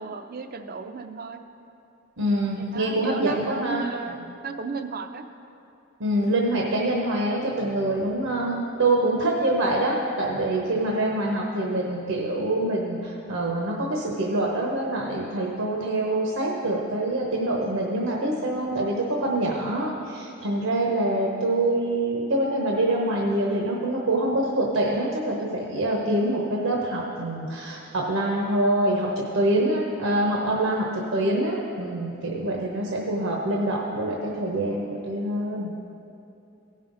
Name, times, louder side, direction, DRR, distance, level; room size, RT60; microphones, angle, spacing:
voice 1, 0.0-1.4 2.7-5.2, right 4 dB, 45° right, 8 dB, 0.5 m, -34 dB
voice 2, 2.2-3.8 6.0-35.7, right 1 dB, 75° right, -1 dB, 0.9 m, -25 dB
16.5 x 5.6 x 3.9 m, 2.7 s
head